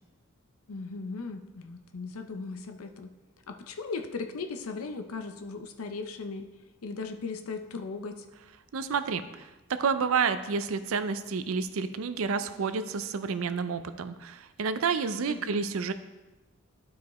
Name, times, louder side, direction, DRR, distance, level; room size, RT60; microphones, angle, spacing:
voice 1, 0.7-3.1 3.5-6.5 6.8-8.2 15.3-15.7, left 4 dB, 80° left, 6 dB, 0.6 m, -37 dB
voice 2, 8.7-15.9, right 5 dB, 70° right, 11 dB, 0.5 m, -30 dB
12.5 x 4.7 x 3.1 m, 1.1 s
head